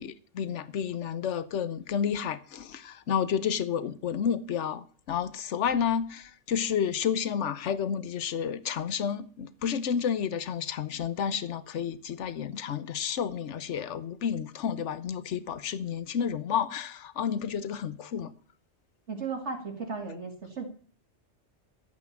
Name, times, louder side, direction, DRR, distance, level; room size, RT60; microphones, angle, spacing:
voice 1, 0.0-18.3, left 8 dB, 70° left, 1.2 m, -31 dB
voice 2, 19.1-20.7, right 4 dB, 65° right, 2.5 m, -35 dB
13.0 x 8.6 x 7.2 m
omnidirectional pair, 1.3 m